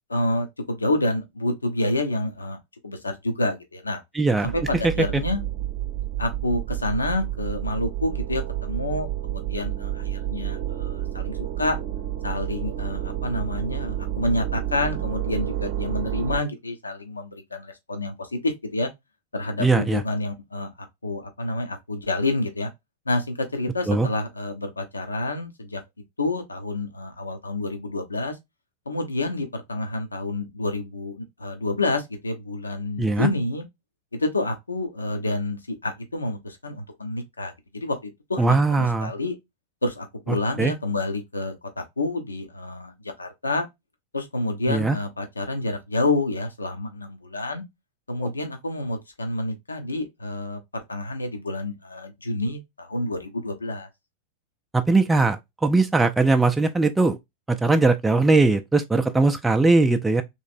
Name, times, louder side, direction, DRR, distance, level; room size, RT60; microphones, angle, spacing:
voice 1, 0.1-2.6 2.8-4.0 4.4-5.4 6.2-11.8 12.2-18.9 19.3-22.7 23.1-25.8 26.2-28.4 28.9-33.6 34.1-39.4 39.8-43.7 44.1-47.6 48.1-53.9, left 2 dB, 80° left, 0.7 m, -28 dB
voice 2, 4.1-4.5 4.8-5.2 19.6-20.0 23.9-24.1 33.0-33.3 38.4-39.1 40.3-40.7 44.7-45.0 48.2-48.3 54.7-57.2 57.5-60.2, right 3 dB, 10° right, 0.4 m, -20 dB
sound 1, 4.4-16.4, right 12 dB, 50° right, 0.6 m, -30 dB
3.2 x 3.0 x 2.5 m
figure-of-eight pair, 90°, 0 cm